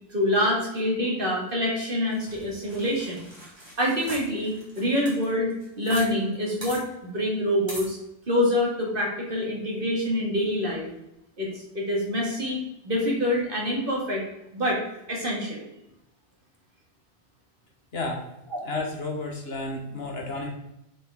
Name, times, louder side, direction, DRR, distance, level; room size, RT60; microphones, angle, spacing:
voice 1, 0.1-3.2 3.8-8.0 8.3-10.9 11.4-14.2 14.5-14.8 15.1-15.6, left 1 dB, 55° right, -3 dB, 2.4 m, -26 dB
sound 1, 2.1-6.1 6.3-6.4 6.6-6.8 7.7-7.9, right 1 dB, 25° right, 2.7 m, -41 dB
voice 2, 17.9-18.2 18.6-20.5, left 2 dB, 70° left, 1 dB, 1.7 m, -32 dB
7.2 x 5.7 x 3.7 m, 0.85 s
omnidirectional pair, 1.1 m